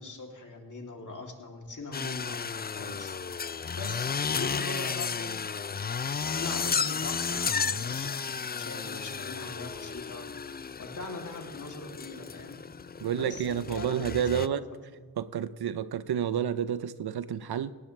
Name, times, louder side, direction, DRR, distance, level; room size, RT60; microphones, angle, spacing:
voice 1, 0.0-3.1 3.7-5.5 6.2-10.3 10.8-12.6 13.1-15.0, left 3 dB, 55° left, 1 dB, 3.0 m, -42 dB
sound 1, 1.9-14.5, left 6 dB, 25° left, 0.4 m, -33 dB
voice 2, 13.0-14.7 15.2-17.7, right 9 dB, 80° right, 14 dB, 0.7 m, -30 dB
18.5 x 17.5 x 3.3 m, 1.5 s
cardioid pair, 65°, 38 cm